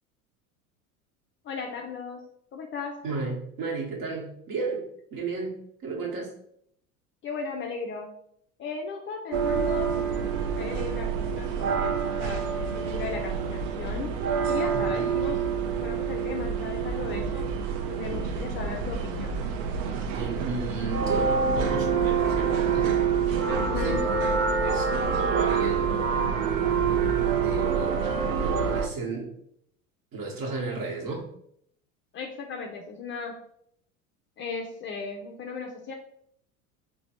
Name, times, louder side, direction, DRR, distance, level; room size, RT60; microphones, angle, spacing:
voice 1, 1.4-2.2 2.5-3.0 7.2-8.1 8.6-10.0 10.5-12.5 12.7-14.2 14.5-15.4 15.8-17.5 17.9-19.4 23.6-24.0 32.1-33.4 34.4-35.9, left 4 dB, 30° left, 1 dB, 0.4 m, -36 dB
voice 2, 3.0-6.3 14.7-15.2 18.1-18.5 20.1-23.0 23.3-24.2 24.6-26.3 27.3-29.4 30.1-31.3, right 4 dB, 50° right, -1 dB, 1.2 m, -34 dB
sound 1, 9.3-28.9, right 6 dB, 65° right, 0.5 m, -27 dB
3.8 x 2.2 x 2.9 m, 0.70 s
hypercardioid pair, 85°, 43 cm